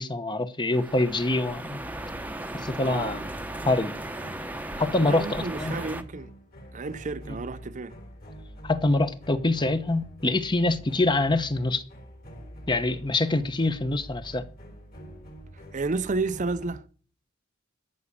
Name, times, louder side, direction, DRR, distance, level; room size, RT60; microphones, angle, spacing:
voice 1, 0.0-1.8 2.5-3.3 3.7-3.9 4.8-5.8 8.6-11.8 12.7-14.4, left 2 dB, 25° left, 1.0 m, -25 dB
sound 1, 0.7-6.0, right 1 dB, 10° right, 0.9 m, -36 dB
sound 2, 1.8-16.8, equal, 50° left, 3.5 m, -45 dB
voice 2, 2.8-3.2 5.0-6.3 6.7-7.9 15.5-16.8, right 3 dB, 40° right, 0.6 m, -31 dB
14.0 x 6.2 x 8.3 m
head